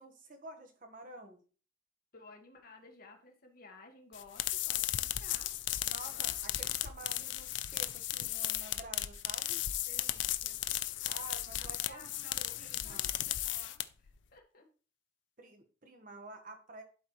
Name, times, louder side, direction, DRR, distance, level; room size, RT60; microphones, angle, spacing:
voice 1, 0.0-1.4 5.8-9.6 11.1-13.1 15.4-16.8, right 2 dB, 45° right, 5 dB, 1.1 m, -50 dB
voice 2, 2.1-5.5 6.1-6.3 6.5-7.0 9.7-10.6 11.5-14.7, left 3 dB, 50° left, 2 dB, 1.5 m, -56 dB
sound 1, 4.1-14.1, left 13 dB, 65° left, 0.4 m, -35 dB
11.0 x 4.2 x 3.0 m, 0.38 s
head